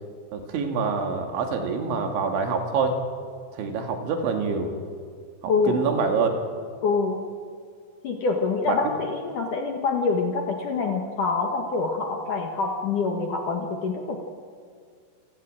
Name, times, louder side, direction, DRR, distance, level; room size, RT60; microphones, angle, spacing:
voice 1, 0.3-3.0 3.5-4.7 5.4-6.3 8.7-8.8, right 5 dB, 75° right, 4 dB, 4.5 m, -26 dB
voice 2, 6.8-7.2 8.0-14.2, left 4 dB, 55° left, 2 dB, 2.5 m, -25 dB
28.0 x 17.0 x 9.0 m, 2.1 s
omnidirectional pair, 5.5 m